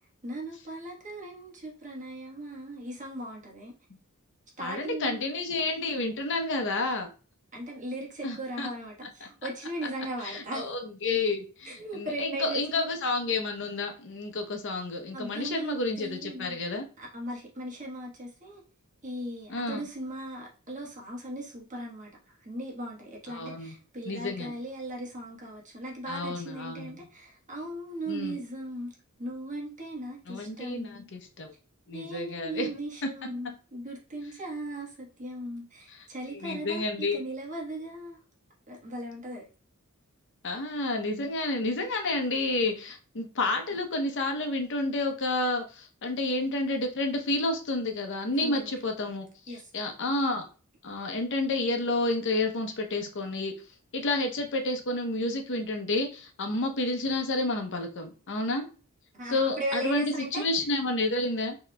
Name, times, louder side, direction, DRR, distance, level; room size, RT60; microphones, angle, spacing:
voice 1, 0.2-3.7 4.6-5.2 7.5-10.7 11.6-12.9 15.1-16.6 17.0-18.6 19.0-31.1 31.9-38.2 38.7-39.4 41.1-41.3 41.7-41.8 48.4-48.7 49.5-49.7 59.1-60.4, right 1 dB, 35° right, -2 dB, 1.3 m, -38 dB
voice 2, 4.6-7.1 8.2-8.7 10.2-16.8 19.5-19.9 23.3-23.7 24.0-24.5 26.1-26.9 28.1-28.4 30.3-31.5 31.9-32.7 33.0-33.1 35.9-36.1 36.3-37.2 40.4-50.5 50.8-53.5 53.9-58.7 59.3-61.6, left 2 dB, 60° left, 4 dB, 0.8 m, -30 dB
5.8 x 2.9 x 2.2 m, 0.36 s
head